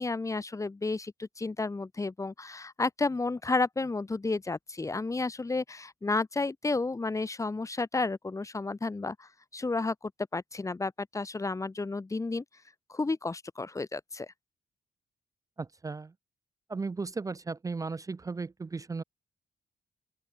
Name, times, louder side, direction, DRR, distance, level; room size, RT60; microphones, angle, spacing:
voice 1, 0.0-12.4 12.9-14.3, left 3 dB, 20° left, 1.4 m, -32 dB
voice 2, 15.6-16.1 16.7-19.0, right 4 dB, 20° right, 0.5 m, -36 dB
open air
wide cardioid pair, 135°, 17 cm